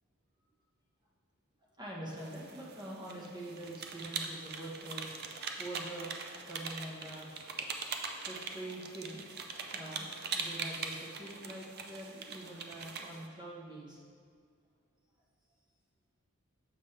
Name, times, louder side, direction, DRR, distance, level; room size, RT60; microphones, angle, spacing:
voice 1, 1.8-5.1 5.6-6.1 6.4-7.3 7.6-7.7 8.2-9.2 9.5-14.0, right 1 dB, 20° right, -4 dB, 1.0 m, -45 dB
sound 1, 2.2-13.3, right 5 dB, 45° right, 0.4 m, -42 dB
7.2 x 5.3 x 3.2 m, 2.1 s
head